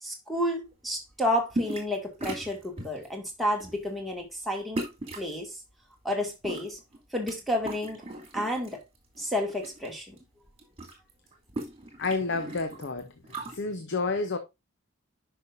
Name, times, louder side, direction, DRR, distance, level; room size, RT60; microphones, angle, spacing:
voice 1, 0.0-4.8 5.2-5.6 6.0-6.8 7.1-8.0 8.3-8.8 9.2-10.2, left 1 dB, ahead, 2.0 m, -31 dB
sound 1, 1.5-3.1 3.6-3.8 4.8-5.3 6.2-7.4 7.6-8.7 9.2-9.9 10.2-10.3 10.5-13.6, right 1 dB, 30° right, 2.5 m, -37 dB
voice 2, 12.0-14.4, left 3 dB, 55° left, 0.8 m, -30 dB
10.5 x 5.7 x 2.6 m
head